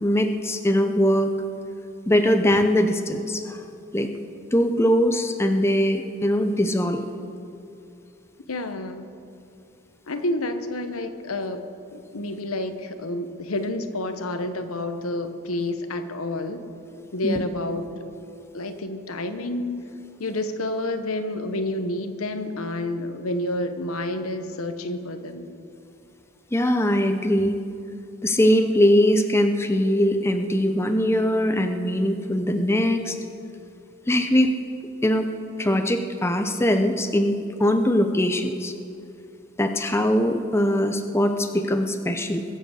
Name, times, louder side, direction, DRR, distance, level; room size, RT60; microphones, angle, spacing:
voice 1, 0.0-1.3 2.1-3.6 3.9-4.1 4.5-7.0 17.2-17.4 26.5-27.6 28.2-33.2 34.1-34.5 35.0-35.3 35.6-38.7 39.6-42.4, equal, 10° left, 6 dB, 0.6 m, -21 dB
voice 2, 8.5-9.0 10.1-11.6 11.9-16.6 17.1-17.8 18.5-19.9 20.2-25.5, left 1 dB, 90° left, 8 dB, 1.1 m, -29 dB
22.0 x 7.8 x 6.5 m, 2.5 s
head